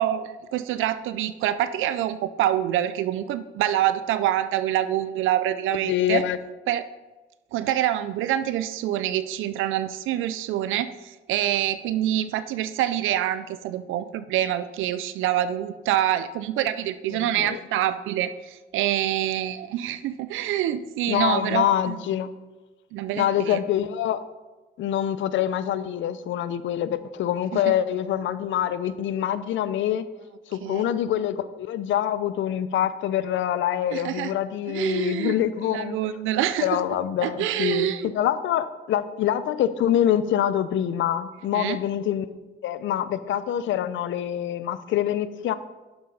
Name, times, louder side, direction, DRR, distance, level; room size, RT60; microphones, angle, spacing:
voice 1, 0.0-6.2 6.7-6.8 7.5-22.0 22.9-23.6 27.5-27.7 30.6-30.9 33.9-34.3 34.7-35.3 35.7-36.8 37.2-38.1 41.5-41.8, right 12 dB, 85° right, 13 dB, 0.5 m, -26 dB
voice 2, 5.8-6.4 17.1-17.6 21.1-22.3 23.1-24.2 24.8-30.0 30.5-36.0 36.6-42.3 42.6-45.5, left 10 dB, 75° left, 14 dB, 0.6 m, -25 dB
11.0 x 6.8 x 3.9 m, 1.2 s
cardioid pair, 90°, 20 cm